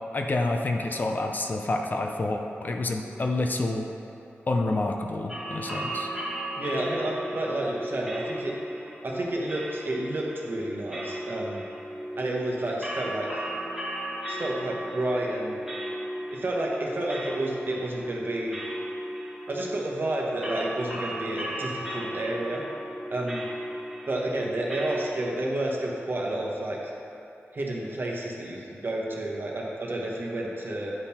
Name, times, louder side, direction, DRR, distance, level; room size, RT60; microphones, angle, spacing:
voice 1, 0.1-3.9 4.5-6.1, left 2 dB, 45° left, 2 dB, 0.5 m, -28 dB
sound 1, 5.3-25.1, right 1 dB, 5° right, 1.3 m, -35 dB
voice 2, 6.5-8.5 9.0-11.6 12.1-13.4 14.3-15.6 16.3-18.6 19.5-22.6 23.1-23.4 24.1-26.9 27.5-30.9, right 1 dB, 50° right, -2 dB, 1.0 m, -30 dB
8.8 x 3.8 x 4.3 m, 2.9 s
wide cardioid pair, 95°, 4 cm